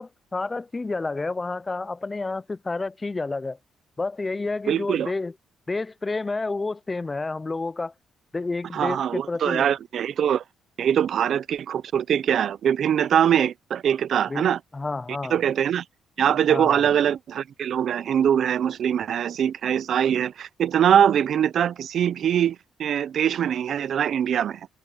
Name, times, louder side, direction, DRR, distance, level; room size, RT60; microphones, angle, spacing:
voice 1, 0.0-3.6 4.0-5.3 5.7-7.9 8.3-9.7 14.3-15.4 16.5-16.8, left 3 dB, 25° left, 0.6 m, -30 dB
voice 2, 4.7-5.1 8.7-10.4 10.8-14.6 15.3-15.8 16.2-24.7, right 9 dB, 65° right, 0.7 m, -22 dB
cardioid pair, 90°, 0 cm